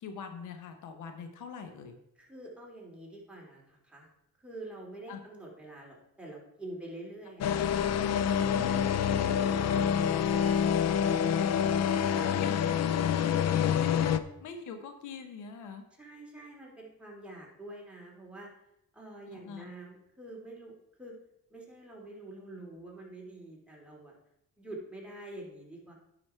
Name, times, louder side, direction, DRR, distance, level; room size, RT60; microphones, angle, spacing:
voice 1, 0.0-2.0 5.1-5.2 8.5-9.3 11.6-11.7 13.8-15.8 19.3-19.7, left 6 dB, 80° left, 7 dB, 1.1 m, -43 dB
voice 2, 2.2-4.1 4.4-7.7 8.1-9.9 10.3-12.8 15.9-18.5 18.9-21.1 21.5-24.1 24.6-25.9, right 1 dB, 5° right, -3 dB, 3.3 m, -47 dB
sound 1, 7.4-14.2, left 8 dB, 60° left, 0.6 m, -27 dB
9.8 x 6.3 x 4.5 m, 0.80 s
cardioid pair, 90°, 30 cm